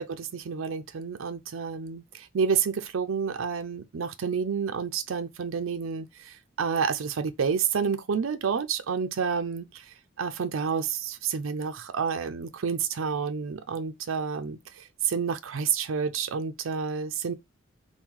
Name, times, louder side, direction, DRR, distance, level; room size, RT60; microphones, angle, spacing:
voice 1, 0.0-17.3, right 6 dB, 80° right, 0.5 m, -29 dB
3.6 x 2.2 x 4.4 m
head